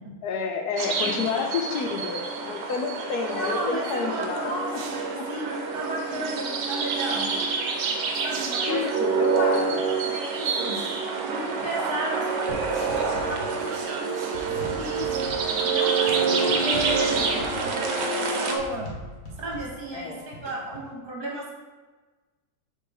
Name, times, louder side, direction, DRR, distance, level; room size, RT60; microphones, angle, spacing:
voice 1, 0.2-4.8 5.2-5.3 6.1-6.3 8.7-9.9 12.5-12.9 14.6-14.7 16.1-16.4 19.9-20.2, left 5 dB, 70° left, 4 dB, 1.1 m, -30 dB
sound 1, 0.8-18.6, right 5 dB, 85° right, 1.4 m, -27 dB
voice 2, 3.4-7.3 8.2-8.9 9.4-10.8 11.2-15.1 15.6-18.8 19.4-21.5, right 1 dB, 35° right, -2 dB, 1.4 m, -34 dB
sound 2, 4.7-5.4 8.2-9.0 10.7-11.2 12.7-13.3 13.7-16.4, right 5 dB, 70° right, 1.2 m, -47 dB
sound 3, 12.5-20.9, equal, 50° left, 1.5 m, -42 dB
6.7 x 3.0 x 4.9 m, 1.3 s
omnidirectional pair, 1.8 m